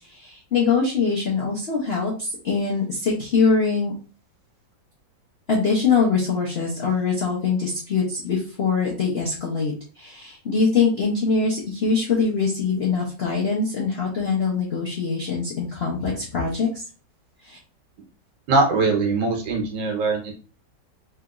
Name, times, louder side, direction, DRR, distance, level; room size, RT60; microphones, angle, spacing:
voice 1, 0.0-3.9 5.5-16.8 17.4-17.6, left 4 dB, 65° left, -4 dB, 0.6 m, -23 dB
voice 2, 18.5-20.3, right 3 dB, 80° right, 1 dB, 1.5 m, -21 dB
3.3 x 2.9 x 2.3 m, 0.36 s
omnidirectional pair, 2.0 m